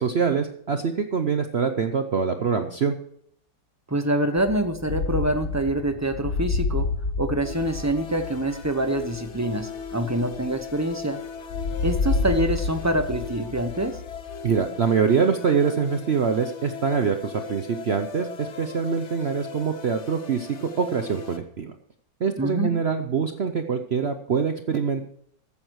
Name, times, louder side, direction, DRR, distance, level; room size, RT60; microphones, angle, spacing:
voice 1, 0.0-3.0 14.4-21.7 22.2-25.1, right 6 dB, 55° right, 7 dB, 0.7 m, -24 dB
voice 2, 3.9-6.9 7.2-11.2 11.8-14.0 22.4-22.8, right 1 dB, 20° right, 8 dB, 0.5 m, -25 dB
sound 1, 4.4-11.0 11.5-14.7, left 4 dB, 60° left, 1.4 m, -30 dB
sound 2, 7.4-21.4, left 7 dB, 45° left, 1.2 m, -39 dB
14.5 x 8.9 x 4.7 m, 0.67 s
omnidirectional pair, 1.9 m